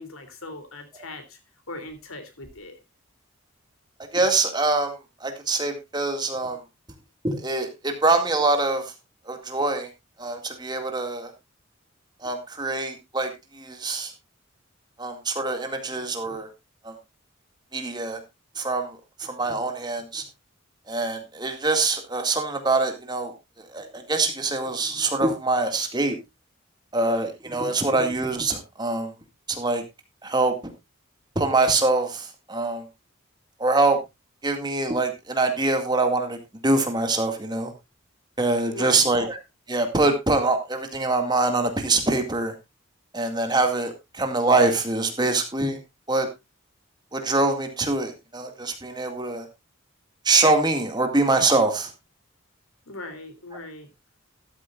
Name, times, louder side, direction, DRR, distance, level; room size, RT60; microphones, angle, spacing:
voice 1, 0.0-1.4 1.7-2.8 27.7-27.8 38.7-39.2 52.9-53.9, left 2 dB, 85° left, 8 dB, 3.1 m, -39 dB
voice 2, 4.1-6.6 7.2-8.9 9.3-9.9 10.2-11.3 12.2-14.1 15.0-16.5 16.8-17.0 17.7-18.2 18.6-20.2 20.9-26.2 26.9-29.1 29.5-29.8 30.2-30.7 31.4-32.8 33.6-34.0 34.4-36.4 36.6-37.7 38.4-39.4 39.7-42.5 43.1-45.8 46.1-46.3 47.1-49.5 50.2-51.9, right 3 dB, 20° right, 5 dB, 2.0 m, -24 dB
13.0 x 13.0 x 2.4 m, 0.22 s
head